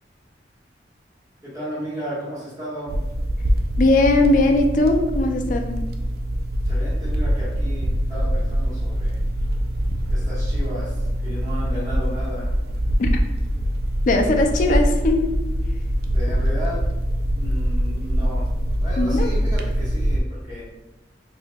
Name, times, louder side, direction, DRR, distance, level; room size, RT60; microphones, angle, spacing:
voice 1, 1.4-2.9 6.6-9.2 10.1-10.9 11.2-12.5 16.1-16.8 17.4-18.5 18.8-20.6, equal, 25° right, -14 dB, 1.5 m, -34 dB
sound 1, 2.9-20.2, equal, 60° right, 0.3 m, -23 dB
voice 2, 3.8-5.8 13.0-13.1 14.1-15.3 19.0-19.3, left 2 dB, 45° left, 4 dB, 0.4 m, -19 dB
4.1 x 2.7 x 2.3 m, 1.0 s
head